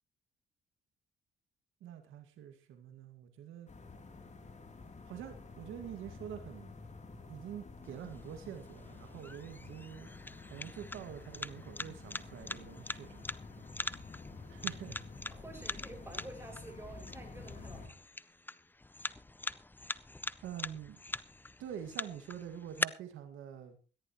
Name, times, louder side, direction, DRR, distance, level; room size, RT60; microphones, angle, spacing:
voice 1, 1.8-3.7 5.1-6.8 7.3-10.1 10.5-13.3 14.5-15.0 20.4-21.0 21.6-23.8, right 9 dB, 85° right, 6 dB, 2.0 m, -46 dB
sound 1, 3.7-17.9, left 3 dB, 35° left, 3.2 m, -50 dB
sound 2, 7.8-22.8, left 2 dB, 10° left, 0.6 m, -43 dB
voice 2, 15.3-18.0, right 2 dB, 10° right, 3 dB, 6.1 m, -49 dB
18.0 x 14.5 x 3.1 m, 0.35 s
cardioid pair, 90°, 20 cm